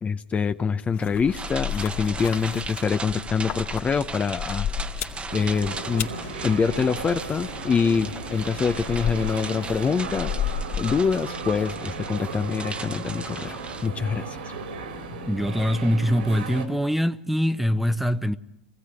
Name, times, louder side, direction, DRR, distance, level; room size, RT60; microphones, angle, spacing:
voice 1, 0.0-4.7 5.3-6.1 6.4-14.4, left 6 dB, 25° left, 0.9 m, -25 dB
sound 1, 0.9-11.3, left 9 dB, 45° left, 2.3 m, -34 dB
sound 2, 1.3-13.9, right 4 dB, 20° right, 1.2 m, -38 dB
sound 3, 5.3-16.7, right 4 dB, 80° right, 4.2 m, -36 dB
voice 2, 15.1-18.4, equal, ahead, 1.0 m, -23 dB
25.0 x 16.5 x 9.9 m
hypercardioid pair, 90°, 5 cm